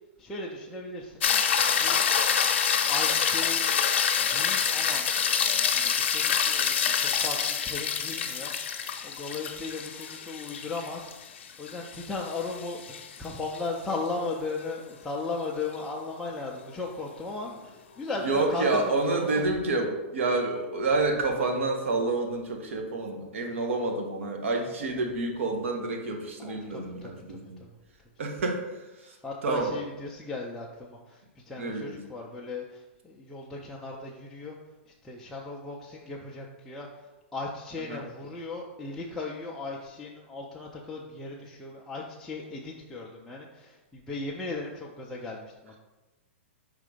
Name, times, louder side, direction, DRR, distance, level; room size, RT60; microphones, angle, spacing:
voice 1, 0.2-1.2 1.8-2.0 2.9-3.6 4.3-5.0 5.7-8.5 9.0-19.5 26.4-27.4 29.2-34.6 34.9-45.8, left 3 dB, 5° left, -5 dB, 0.3 m, -37 dB
sound 1, 1.2-13.6 18.1-18.2, left 7 dB, 60° left, 0.7 m, -26 dB
voice 2, 18.2-27.6 28.2-28.6 29.0-29.2 29.4-29.7 31.6-32.0 37.9-38.0, right 3 dB, 75° right, 3 dB, 1.2 m, -28 dB
5.1 x 3.7 x 4.9 m, 1.1 s
hypercardioid pair, 170°, 7 cm